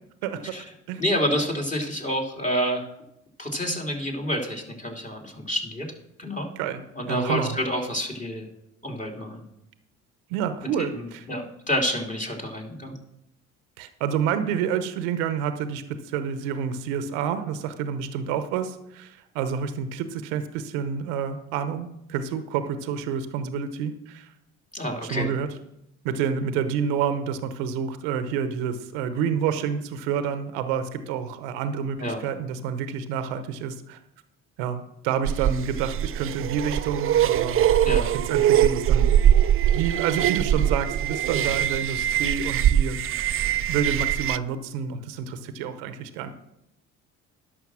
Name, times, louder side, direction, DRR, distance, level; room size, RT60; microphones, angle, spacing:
voice 1, 0.2-0.6 0.9-1.0 6.6-6.8 7.1-7.6 10.3-11.3 13.8-24.3 25.0-25.5 26.0-34.0 34.6-37.6 38.3-39.2 39.7-43.0 43.7-46.3, right 7 dB, 85° right, 10 dB, 0.9 m, -28 dB
voice 2, 1.0-2.9 3.4-5.9 6.2-6.5 7.0-8.5 8.8-9.4 10.9-13.0 24.7-25.3 32.0-32.2 37.8-38.1, equal, 20° left, 0 dB, 3.1 m, -28 dB
sound 1, 35.3-44.4, right 10 dB, 40° right, 0.4 m, -22 dB
11.0 x 6.4 x 6.2 m, 0.81 s
hypercardioid pair, 60°, 35 cm